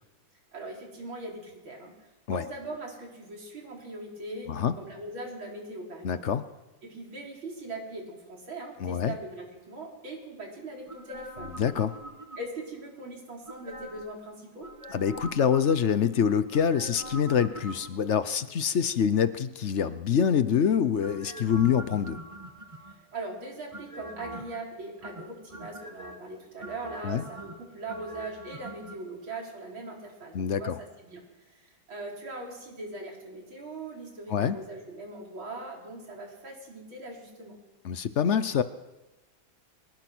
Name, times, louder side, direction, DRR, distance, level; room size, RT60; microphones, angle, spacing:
voice 1, 0.5-1.9 2.3-6.2 6.8-11.5 12.4-14.7 23.1-31.2 31.5-37.6, right 2 dB, 85° right, -1 dB, 5.7 m, -40 dB
voice 2, 6.0-6.4 8.8-9.2 11.6-11.9 14.9-22.2 27.0-27.2 30.3-30.8 34.3-34.6 37.8-38.6, left 7 dB, 55° left, 13 dB, 0.8 m, -25 dB
sound 1, 10.9-12.7 13.4-14.2 14.6-16.1 16.5-18.2 21.0-23.1 23.7-24.6 25.0-26.2 26.6-29.0 29.2-29.3, right 2 dB, 15° right, 2.0 m, -43 dB
24.5 x 20.0 x 6.2 m, 1.1 s
omnidirectional pair, 2.1 m